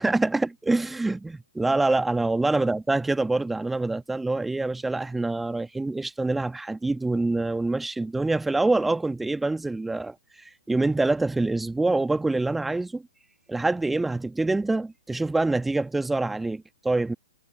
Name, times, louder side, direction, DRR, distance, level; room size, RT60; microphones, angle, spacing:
voice 1, 0.0-13.0 13.5-17.1, right 2 dB, 5° right, 1.5 m, -25 dB
figure-of-eight pair, 120°, 2 cm